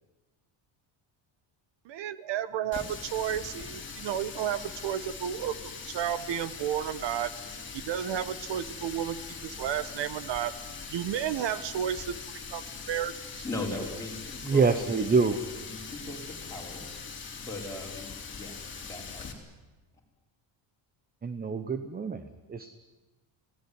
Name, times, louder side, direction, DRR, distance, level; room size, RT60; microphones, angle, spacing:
voice 1, 1.8-7.3 7.7-10.6 10.9-12.1 12.5-13.4, right 10 dB, 60° right, 15 dB, 1.3 m, -32 dB
Water tap faucet, 2.7-19.3, left 5 dB, 25° left, 3.4 m, -42 dB
voice 2, 13.4-14.7 15.1-16.8 17.4-19.3, left 2 dB, 5° left, -2 dB, 5.3 m, -39 dB
voice 3, 14.4-15.4 21.2-22.7, right 4 dB, 20° right, 10 dB, 0.9 m, -26 dB
26.0 x 17.5 x 9.8 m, 1.2 s
cardioid pair, 160°, 49 cm